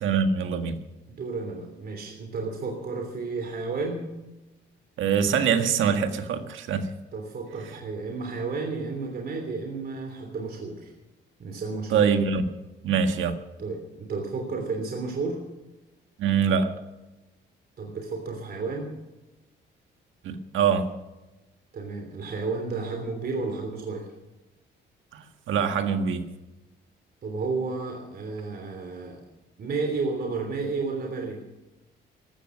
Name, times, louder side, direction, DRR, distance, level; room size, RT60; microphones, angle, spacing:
voice 1, 0.0-0.8 5.0-6.9 11.9-12.5 12.8-13.4 16.2-16.8 20.2-20.9 25.1-26.2, right 6 dB, 80° right, 7 dB, 1.7 m, -24 dB
voice 2, 1.1-4.1 7.1-10.9 11.4-12.0 13.6-15.4 17.8-18.9 21.7-24.1 27.2-29.2 29.6-31.4, right 4 dB, 50° right, 3 dB, 3.3 m, -32 dB
15.0 x 13.0 x 6.3 m, 1.0 s
cardioid pair, 90°, 20 cm